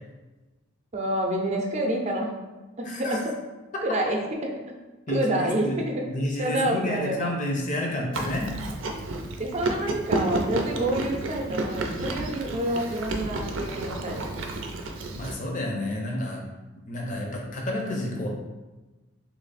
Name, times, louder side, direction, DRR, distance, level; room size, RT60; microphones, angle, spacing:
voice 1, 0.9-2.3 2.8-3.2 3.8-4.5 5.1-6.0 6.4-7.3 9.4-14.4, right 1 dB, 35° right, 1 dB, 0.6 m, -28 dB
voice 2, 2.8-3.2 5.1-5.8 6.1-8.6 15.1-16.4 16.8-18.3, left 1 dB, 40° left, 0 dB, 0.7 m, -30 dB
Chewing mastication, 8.1-15.3, right 2 dB, 85° right, 0.5 m, -31 dB
3.2 x 3.0 x 4.1 m, 1.2 s
head